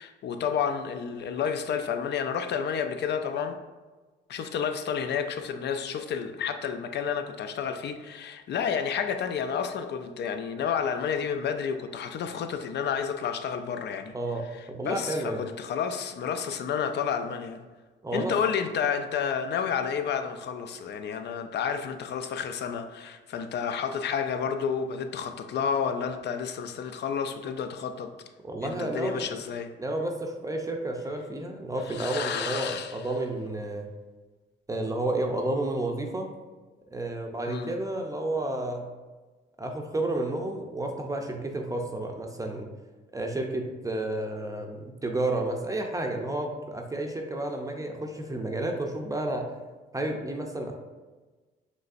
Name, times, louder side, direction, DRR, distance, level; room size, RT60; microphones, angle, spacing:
voice 1, 0.0-3.6 4.3-14.1 14.8-17.7 18.1-28.1 28.6-29.7 31.9-32.9 37.5-37.7, left 7 dB, 60° left, 7 dB, 0.5 m, -30 dB
voice 2, 14.1-15.4 18.0-18.3 28.4-29.3 29.8-33.9 34.7-36.3 36.9-38.9 39.6-42.7 43.1-49.5 49.9-50.7, right 2 dB, 15° right, 2 dB, 0.5 m, -31 dB
5.3 x 3.2 x 2.6 m, 1.3 s
cardioid pair, 90°, 20 cm